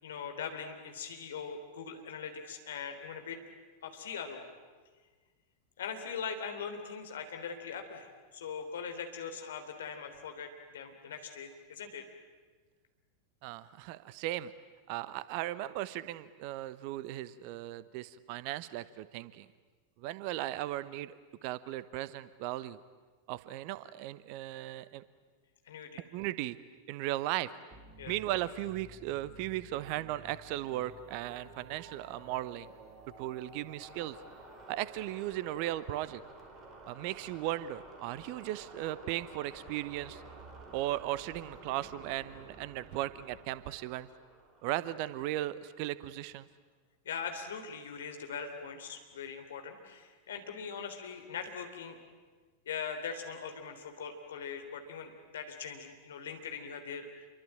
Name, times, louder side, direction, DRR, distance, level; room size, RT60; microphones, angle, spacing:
voice 1, 0.0-3.4 3.8-4.4 5.8-12.0 25.7-26.0 28.0-28.1 47.1-52.0 52.7-57.1, left 6 dB, 60° left, 6 dB, 3.6 m, -41 dB
voice 2, 13.4-14.5 14.9-19.5 20.0-22.8 23.3-25.0 26.1-26.6 26.9-27.5 28.0-32.7 33.2-34.2 34.7-36.2 36.9-40.2 40.7-44.1 44.6-46.5, right 15 dB, 45° right, 16 dB, 1.0 m, -37 dB
sound 1, 27.7-46.2, right 2 dB, 20° right, 5.0 m, -53 dB
27.5 x 23.5 x 8.9 m, 1.4 s
figure-of-eight pair, 90°, 0 cm